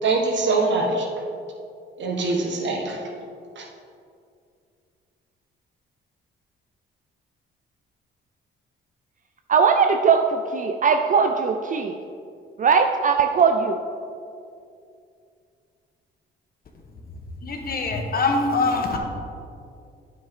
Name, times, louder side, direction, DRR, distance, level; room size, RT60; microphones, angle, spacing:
voice 1, 0.0-1.1 2.0-3.0 3.6-3.7, right 3 dB, 65° right, 1 dB, 1.5 m, -23 dB
voice 2, 9.5-12.0 12.6-13.8, right 6 dB, 40° right, 5 dB, 0.5 m, -19 dB
voice 3, 17.4-19.0, left 3 dB, 50° left, 3 dB, 1.3 m, -23 dB
9.1 x 7.6 x 3.7 m, 2.4 s
cardioid pair, 90°, 20 cm